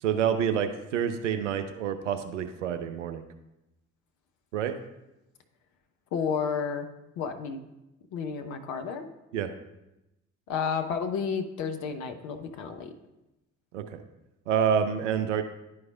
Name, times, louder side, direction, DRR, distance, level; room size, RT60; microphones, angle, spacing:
voice 1, 0.0-3.2 4.5-4.8 9.3-9.5 13.7-14.0 14.5-15.4, right 8 dB, 80° right, 8 dB, 0.5 m, -28 dB
voice 2, 6.1-6.9 7.2-7.6 8.1-9.1 10.5-12.9, left 6 dB, 50° left, 6 dB, 0.7 m, -31 dB
11.0 x 4.6 x 2.4 m, 0.92 s
figure-of-eight pair, 45°, 36 cm